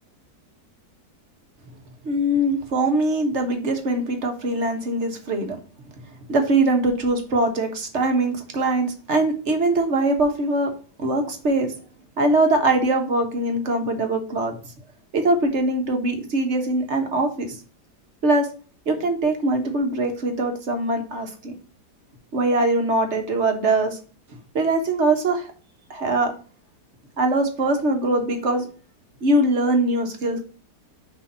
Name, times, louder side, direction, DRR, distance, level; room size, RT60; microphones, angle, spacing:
voice 1, 2.0-5.6 6.3-10.7 11.0-11.7 12.2-14.6 15.1-17.5 18.2-18.5 18.9-21.5 22.3-24.0 24.3-25.5 25.9-26.3 27.2-28.7 29.2-30.5, right 2 dB, 45° right, 5 dB, 1.5 m, -22 dB
6.3 x 3.5 x 5.5 m, 0.38 s
omnidirectional pair, 1.8 m